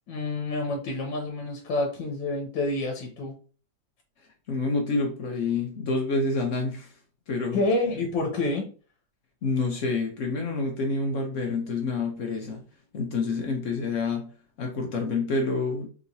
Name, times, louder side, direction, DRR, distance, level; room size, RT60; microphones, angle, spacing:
voice 1, 0.1-3.3 7.5-8.7, left 2 dB, 90° left, 1 dB, 1.5 m, -28 dB
voice 2, 4.5-6.9 7.3-7.6 9.4-12.6 12.9-14.3 14.6-15.9, left 3 dB, 65° left, 2 dB, 0.8 m, -28 dB
3.7 x 2.8 x 2.6 m, 0.39 s
omnidirectional pair, 2.0 m